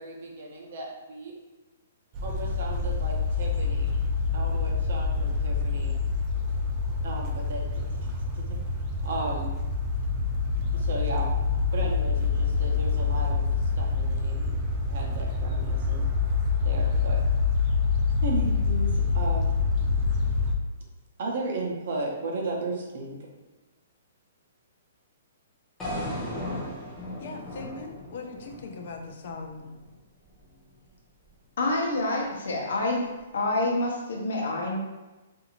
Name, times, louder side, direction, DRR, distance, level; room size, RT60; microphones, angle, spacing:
voice 1, 0.0-1.3 2.2-3.9 4.3-6.0 7.0-7.6 7.9-8.0 8.3-8.6 9.0-9.5 10.7-11.3 11.7-13.4 13.8-14.6 14.8-16.0 16.6-17.2 18.2-19.5 21.2-23.2, right 2 dB, 55° right, -1 dB, 0.6 m, -35 dB
sound 1, 2.1-20.5, left 4 dB, 25° right, 0.3 m, -26 dB
sound 2, 25.8-29.9, left 1 dB, 15° left, 0.7 m, -36 dB
voice 2, 27.2-29.7, left 4 dB, 50° left, 3 dB, 0.3 m, -40 dB
voice 3, 31.6-33.1 33.3-34.8, left 2 dB, 75° left, -1 dB, 0.7 m, -27 dB
2.6 x 2.4 x 2.9 m, 1.1 s
hypercardioid pair, 165°, 0 cm